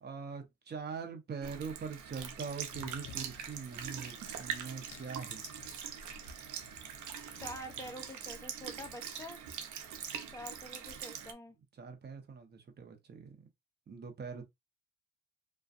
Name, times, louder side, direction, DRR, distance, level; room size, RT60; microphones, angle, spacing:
voice 1, 0.0-5.4 11.8-13.4 13.9-14.4, right 5 dB, 35° right, 0.8 m, -43 dB
Sink (filling or washing) / Liquid, 1.4-11.3, right 8 dB, 75° right, 0.6 m, -43 dB
sound 1, 2.7-8.2, left 7 dB, 75° left, 0.6 m, -55 dB
voice 2, 7.4-9.4 10.3-11.6 14.4-14.5, equal, 10° left, 0.5 m, -46 dB
2.5 x 2.3 x 2.3 m
cardioid pair, 90°, 30 cm